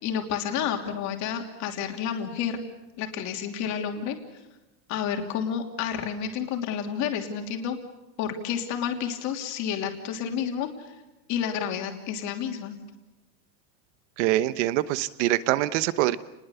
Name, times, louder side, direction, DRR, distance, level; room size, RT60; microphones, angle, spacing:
voice 1, 0.0-2.6 3.0-4.2 4.9-7.8 8.2-10.9 11.3-12.8, left 8 dB, 35° left, 3 dB, 3.0 m, -30 dB
voice 2, 14.2-16.2, right 15 dB, 45° right, 15 dB, 1.1 m, -24 dB
29.5 x 20.5 x 7.1 m, 1.0 s
supercardioid pair, 170°, 50 cm